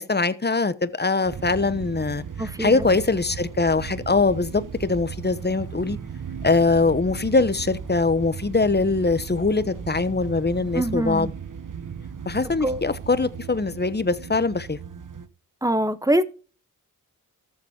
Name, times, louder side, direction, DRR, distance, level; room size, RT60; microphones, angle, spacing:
voice 1, 0.0-2.2 2.6-6.0 6.4-11.3 12.3-14.8, left 3 dB, 30° left, 1.0 m, -22 dB
sound 1, 1.3-15.3, right 7 dB, 60° right, 1.3 m, -36 dB
voice 2, 2.4-2.8 10.7-11.3 12.6-12.8 15.6-16.2, right 1 dB, 10° right, 1.1 m, -23 dB
14.0 x 7.2 x 4.4 m
wide cardioid pair, 75°, 35 cm